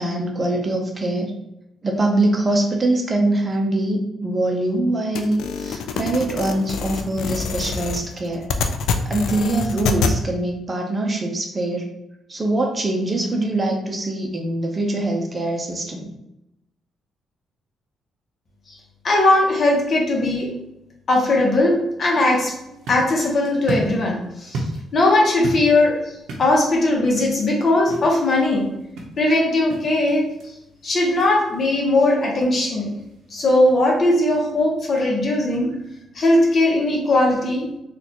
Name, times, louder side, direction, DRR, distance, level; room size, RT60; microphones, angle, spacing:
voice 1, 0.0-1.3 1.8-8.5 9.0-11.9 12.3-16.1, right 2 dB, 30° right, 2 dB, 0.6 m, -23 dB
sound 1, 5.1-10.2, left 5 dB, 80° left, 0.3 m, -25 dB
voice 2, 19.0-20.5 21.1-22.5 22.9-24.6 24.9-26.0 26.4-28.7 29.2-30.2 30.8-32.9 33.3-35.7 36.1-37.7, left 2 dB, 45° left, -1 dB, 1.0 m, -19 dB
sound 2, 22.5-36.0, right 2 dB, 75° right, 0.7 m, -36 dB
4.0 x 2.4 x 2.9 m, 0.85 s
cardioid pair, 90°, 0 cm